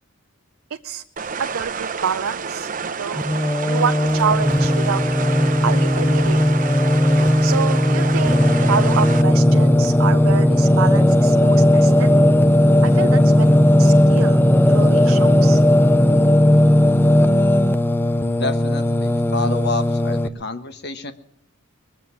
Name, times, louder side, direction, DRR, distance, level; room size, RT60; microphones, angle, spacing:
sound 1, 1.2-9.2, right 5 dB, 40° right, 0.8 m, -29 dB
voice 1, 1.4-2.7 3.0-3.2 3.6-5.0 5.6-6.4 7.4-8.4 8.7-12.1 12.8-14.4 14.7-15.6, right 6 dB, 85° right, 9 dB, 0.5 m, -27 dB
Singing, 3.2-20.3, left 1 dB, 10° left, 0.6 m, -16 dB
voice 2, 18.3-21.1, left 3 dB, 55° left, 9 dB, 1.3 m, -28 dB
21.5 x 7.6 x 8.3 m, 0.74 s
head